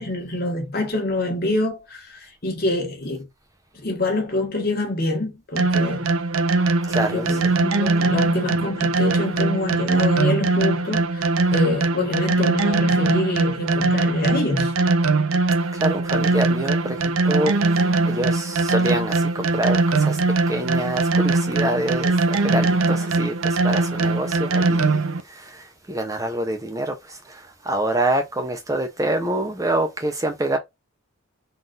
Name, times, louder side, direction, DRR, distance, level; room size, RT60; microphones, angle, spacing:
voice 1, 0.0-3.3 3.7-6.2 7.1-14.7, left 2 dB, 45° left, 1.3 m, -26 dB
sound 1, 5.6-25.2, right 3 dB, 75° right, 0.5 m, -21 dB
voice 2, 6.9-7.5 15.7-20.2 20.5-30.6, right 1 dB, 15° right, 0.5 m, -26 dB
4.0 x 2.5 x 3.8 m
head